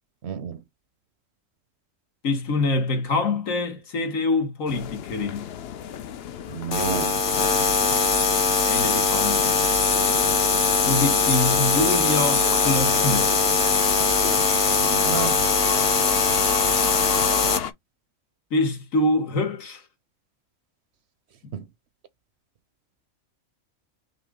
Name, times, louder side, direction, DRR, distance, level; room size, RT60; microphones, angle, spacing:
voice 1, 0.2-0.6 6.5-7.2 14.8-15.5 21.5-21.7, right 8 dB, 65° right, 0.8 m, -31 dB
voice 2, 2.2-5.5 8.6-9.6 10.9-13.3 18.5-19.8 21.4-21.5, left 2 dB, 80° left, 1.8 m, -25 dB
sound 1, 4.7-17.7, left 9 dB, 60° left, 0.7 m, -33 dB
sound 2, 6.7-17.6, left 4 dB, 40° left, 1.1 m, -21 dB
5.9 x 2.4 x 3.6 m
omnidirectional pair, 1.4 m